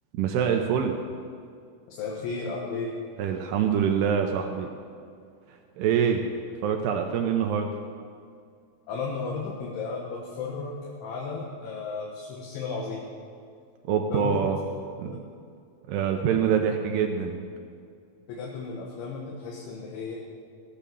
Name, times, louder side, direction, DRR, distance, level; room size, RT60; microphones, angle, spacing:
voice 1, 0.1-1.0 3.2-4.7 5.5-6.2 6.6-7.7 13.9-14.6 15.0-15.2 15.9-17.4, right 7 dB, 85° right, 3 dB, 2.4 m, -25 dB
voice 2, 1.9-2.9 8.9-13.1 14.1-14.4 15.0-15.2 18.3-20.2, left 4 dB, 75° left, -3 dB, 3.7 m, -34 dB
17.0 x 8.8 x 7.0 m, 2.3 s
omnidirectional pair, 5.6 m